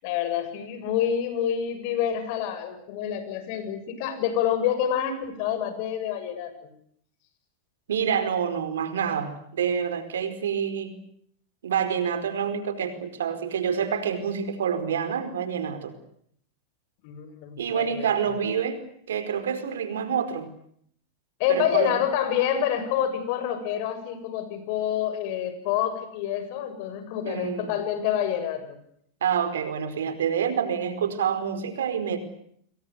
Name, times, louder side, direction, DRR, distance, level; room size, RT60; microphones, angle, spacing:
voice 1, 0.0-6.7 17.0-18.0 21.4-28.8, left 9 dB, 60° left, 11 dB, 7.5 m, -27 dB
voice 2, 7.9-11.0 11.6-15.9 17.6-20.5 21.5-22.0 27.2-27.7 29.2-32.2, right 7 dB, 85° right, 10 dB, 4.8 m, -27 dB
28.5 x 22.5 x 8.3 m, 0.67 s
hypercardioid pair, 110°, 0 cm